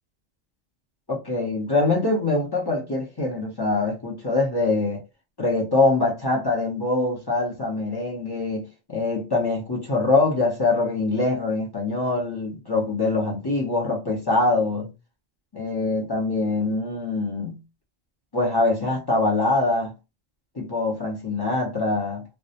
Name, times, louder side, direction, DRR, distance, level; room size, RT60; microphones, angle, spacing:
voice 1, 1.1-5.0 5.4-14.9 15.5-17.6 18.3-19.9 20.6-22.2, left 2 dB, 30° left, 0.5 m, -24 dB
2.3 x 2.1 x 2.7 m
omnidirectional pair, 1.3 m